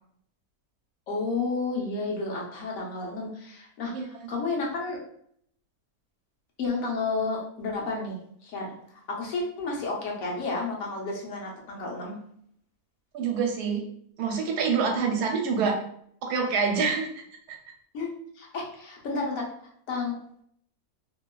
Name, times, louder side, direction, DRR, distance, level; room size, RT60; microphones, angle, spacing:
voice 1, 1.1-5.0 6.6-12.2 17.9-18.1 18.3-19.5 19.9-20.1, left 3 dB, 65° left, -1 dB, 1.0 m, -31 dB
voice 2, 13.1-13.8 14.2-15.8 16.3-17.1, right 5 dB, 85° right, 2 dB, 1.1 m, -26 dB
2.8 x 2.2 x 2.2 m, 0.67 s
omnidirectional pair, 1.7 m